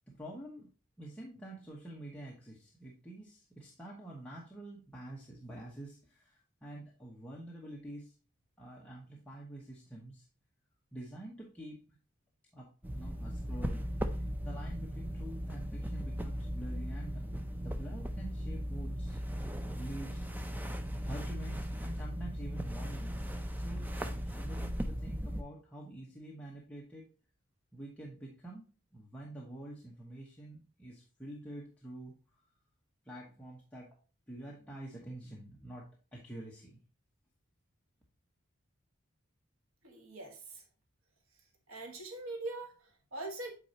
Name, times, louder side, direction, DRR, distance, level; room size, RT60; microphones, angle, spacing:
voice 1, 0.1-0.7 1.0-8.1 8.6-10.3 10.9-12.0 12.5-19.2 19.8-20.2 21.0-27.1 27.7-32.4 33.0-34.0 34.3-36.8, right 1 dB, 5° left, -4 dB, 1.1 m, -47 dB
sound 1, 12.8-25.4, equal, 10° right, 0.5 m, -37 dB
voice 2, 39.8-40.6 41.7-43.5, right 2 dB, 75° right, 3 dB, 1.5 m, -42 dB
8.4 x 4.3 x 2.8 m, 0.34 s
head